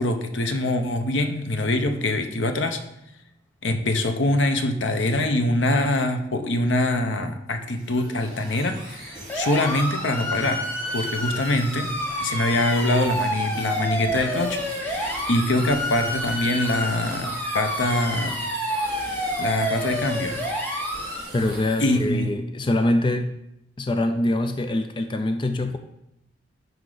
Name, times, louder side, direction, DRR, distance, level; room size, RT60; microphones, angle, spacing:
voice 1, 0.0-2.8 3.6-10.6 10.9-11.9 12.2-18.4 19.4-20.4 21.8-22.3, left 1 dB, 85° left, 6 dB, 0.9 m, -24 dB
sound 1, 7.6-22.2, right 1 dB, 5° right, 3.2 m, -40 dB
sound 2, 9.3-21.2, equal, 10° left, 1.1 m, -29 dB
voice 2, 21.3-23.3 23.8-25.8, left 1 dB, 25° left, 7 dB, 0.4 m, -24 dB
11.0 x 4.7 x 3.9 m, 0.82 s
head